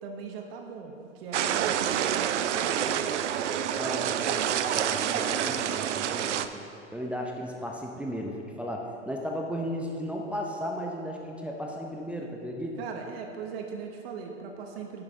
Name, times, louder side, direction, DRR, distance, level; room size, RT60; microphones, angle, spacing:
voice 1, 0.0-3.1 12.1-12.3 12.8-15.0, right 5 dB, 55° right, 3 dB, 1.1 m, -40 dB
sound 1, 1.3-6.5, right 9 dB, 75° right, 0.5 m, -28 dB
voice 2, 3.7-6.6 6.9-12.8, equal, 5° right, 0 dB, 0.6 m, -35 dB
9.7 x 6.5 x 3.6 m, 2.5 s
hypercardioid pair, 95°, 35 cm